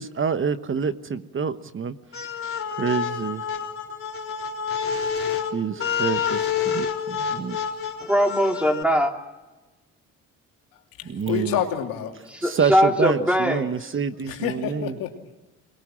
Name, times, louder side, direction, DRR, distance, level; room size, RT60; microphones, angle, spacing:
voice 1, 0.0-2.0 2.8-3.4 5.5-7.6 11.0-11.6 12.4-15.0, right 6 dB, 35° right, 11 dB, 1.1 m, -27 dB
sound 1, 2.1-8.8, left 7 dB, 40° left, 3.9 m, -28 dB
voice 2, 8.1-9.1 12.4-13.7, equal, 5° right, 3 dB, 3.6 m, -20 dB
voice 3, 11.0-12.2 14.2-15.3, left 9 dB, 85° left, 2 dB, 2.9 m, -28 dB
24.0 x 21.0 x 7.5 m, 1.1 s
supercardioid pair, 75°, 34 cm